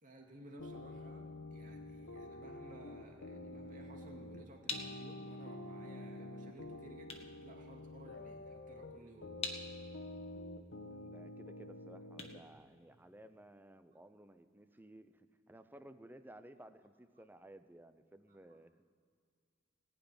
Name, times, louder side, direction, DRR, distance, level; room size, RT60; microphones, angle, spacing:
voice 1, 0.0-9.3 18.3-18.6, right 1 dB, 40° right, 1 dB, 2.2 m, -57 dB
sound 1, 0.6-12.4, left 1 dB, 90° left, 1.1 m, -48 dB
sound 2, 4.6-13.4, left 4 dB, 30° left, 1.4 m, -49 dB
voice 2, 10.9-18.7, right 1 dB, 10° right, 10 dB, 0.6 m, -57 dB
18.5 x 6.1 x 9.8 m, 2.1 s
head